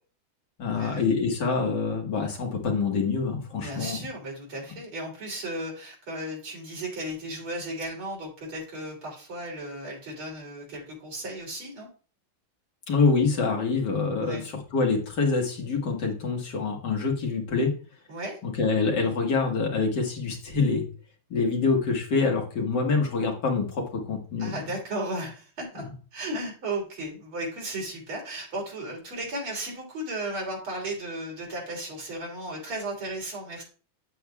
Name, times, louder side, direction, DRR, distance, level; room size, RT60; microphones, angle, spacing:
voice 1, 0.6-4.0 12.9-17.7 18.4-20.9 21.3-24.6 25.8-25.9, left 4 dB, 60° left, 1 dB, 2.0 m, -26 dB
voice 2, 3.6-11.9 14.2-14.5 18.1-18.4 24.4-25.8 26.1-33.6, right 1 dB, 90° right, -1 dB, 3.9 m, -35 dB
8.7 x 7.8 x 2.3 m, 0.38 s
omnidirectional pair, 2.2 m